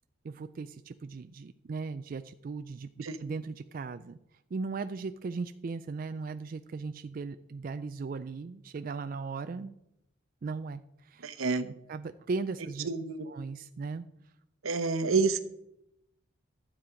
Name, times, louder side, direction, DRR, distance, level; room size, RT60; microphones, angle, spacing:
voice 1, 0.2-4.2 4.5-9.7 10.4-11.3 11.9-12.9 13.2-14.1, right 4 dB, 40° right, 9 dB, 0.3 m, -37 dB
voice 2, 11.2-11.7 12.8-13.3 14.6-15.4, right 4 dB, 85° right, 11 dB, 0.8 m, -28 dB
12.5 x 7.4 x 5.0 m, 0.83 s
head